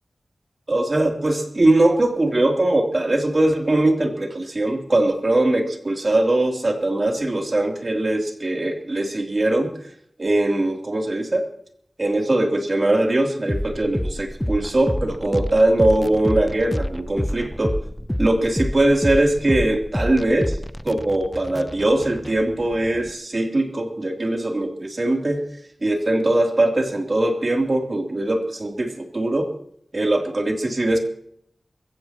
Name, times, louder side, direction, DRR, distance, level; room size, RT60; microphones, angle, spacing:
voice 1, 0.7-9.7 10.2-11.4 12.0-17.8 18.2-20.6 20.8-25.4 25.8-29.5 29.9-31.0, right 1 dB, 50° right, 2 dB, 3.2 m, -21 dB
sound 1, 13.5-23.1, equal, 10° left, 0.7 m, -28 dB
23.0 x 15.5 x 3.0 m, 0.66 s
wide cardioid pair, 65°, 0 cm